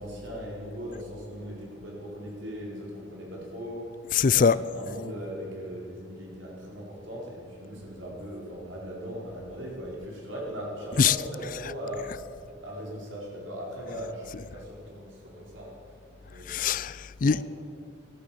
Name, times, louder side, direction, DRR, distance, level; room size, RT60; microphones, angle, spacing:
voice 1, 0.0-4.0 4.2-12.1 12.6-15.8 16.2-16.6 17.2-17.4, equal, 80° right, -3 dB, 4.7 m, -39 dB
voice 2, 4.2-4.6 11.0-11.1 16.5-17.4, left 6 dB, 45° left, 18 dB, 0.4 m, -22 dB
13.5 x 13.5 x 7.7 m, 2.3 s
head